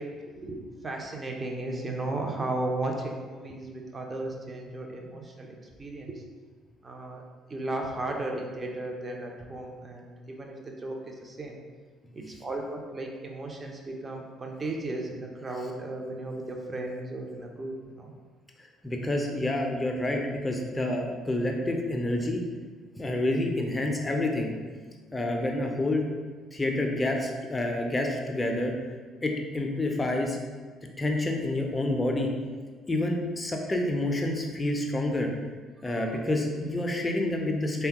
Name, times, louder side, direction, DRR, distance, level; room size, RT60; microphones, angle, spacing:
voice 1, 0.0-6.2 6.8-7.2 7.5-11.6 12.1-18.1, right 2 dB, 30° right, 1 dB, 0.5 m, -35 dB
voice 2, 18.8-22.4 23.0-24.5 25.1-26.0 26.5-28.7 29.2-30.4 31.0-32.3 32.9-35.3 35.8-37.9, left 1 dB, 20° left, 2 dB, 0.5 m, -28 dB
3.3 x 2.2 x 2.9 m, 1.5 s
figure-of-eight pair, 50°, 0 cm